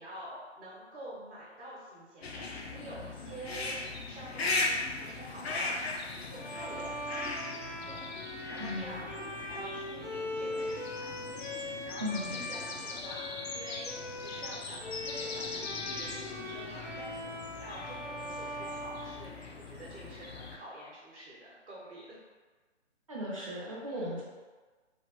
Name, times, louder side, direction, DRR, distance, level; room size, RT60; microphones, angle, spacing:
voice 1, 0.0-3.7 4.0-11.2 11.8-13.9 14.2-22.2 23.8-24.2, right 1 dB, 60° right, -8 dB, 1.0 m, -48 dB
sound 1, 2.2-20.6, left 3 dB, 60° left, 0.5 m, -39 dB
Bowed string instrument, 6.3-19.8, left 1 dB, 85° left, 1.1 m, -41 dB
voice 2, 8.6-9.0 12.0-12.5 23.1-24.2, left 1 dB, 30° right, -6 dB, 0.5 m, -36 dB
3.1 x 2.1 x 2.9 m, 1.3 s
hypercardioid pair, 160°, 36 cm